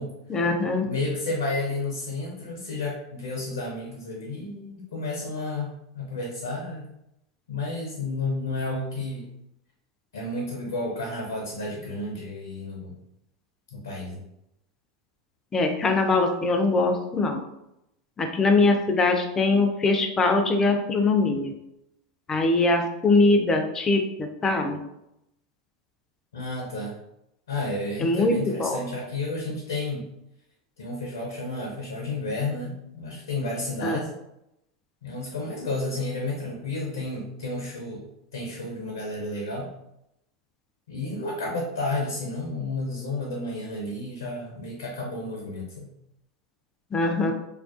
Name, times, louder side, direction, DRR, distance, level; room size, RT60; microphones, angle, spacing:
voice 1, 0.3-0.9 15.5-17.4 18.2-21.5 22.3-24.8 28.0-28.3 28.6-28.8 33.8-34.0 46.9-47.3, left 3 dB, 25° left, 4 dB, 0.4 m, -22 dB
voice 2, 0.8-6.9 7.5-9.3 10.1-12.9 13.7-14.2 26.3-26.9 27.5-30.1 30.8-34.1 35.0-39.7 40.9-45.9, left 2 dB, 75° left, -2 dB, 0.5 m, -31 dB
2.3 x 2.2 x 2.4 m, 0.84 s
hypercardioid pair, 85°, 2 cm